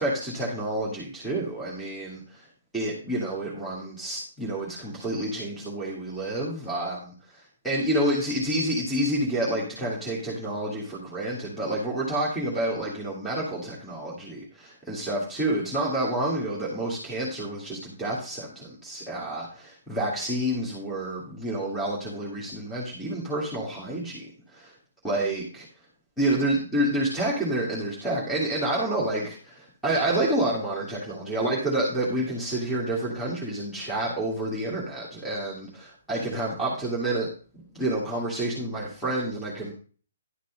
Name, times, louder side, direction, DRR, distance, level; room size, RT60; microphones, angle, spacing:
voice 1, 0.0-2.5 2.7-24.7 25.0-25.7 26.2-37.3 37.7-39.7, right 1 dB, ahead, -7 dB, 2.4 m, -29 dB
11.5 x 5.3 x 5.3 m, 0.40 s
figure-of-eight pair, 125°, 0 cm